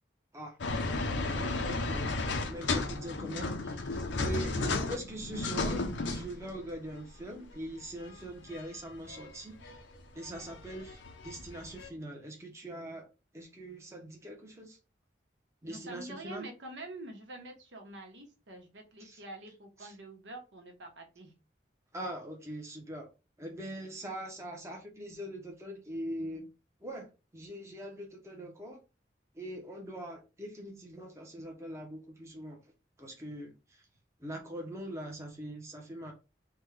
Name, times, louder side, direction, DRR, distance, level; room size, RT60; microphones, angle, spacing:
voice 1, 0.3-9.8 10.1-13.1 13.3-14.8 15.6-16.5 19.0-19.2 19.8-19.9 21.9-23.1 23.4-26.5 26.8-28.8 29.3-32.6 33.0-33.9 34.2-36.1, right 1 dB, 15° right, 0.7 m, -42 dB
sound 1, 0.6-6.7 7.5-7.6 7.8-8.6 9.1-11.9, left 3 dB, 85° left, 0.6 m, -34 dB
voice 2, 15.6-21.3, right 2 dB, 85° right, 1.0 m, -46 dB
3.4 x 2.2 x 3.2 m
head